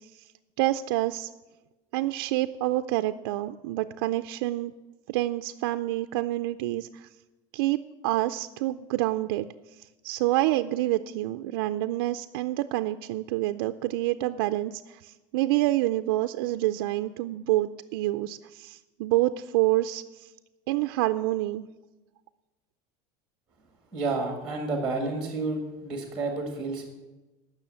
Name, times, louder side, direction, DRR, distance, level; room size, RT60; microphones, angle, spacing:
voice 1, 0.6-1.3 1.9-4.7 5.1-7.1 7.5-9.5 10.0-20.3 20.7-21.7, right 16 dB, 85° right, 8 dB, 0.5 m, -27 dB
voice 2, 23.9-26.9, right 3 dB, 5° right, 3 dB, 1.7 m, -30 dB
16.5 x 6.3 x 7.6 m, 1.1 s
cardioid pair, 175°, 12 cm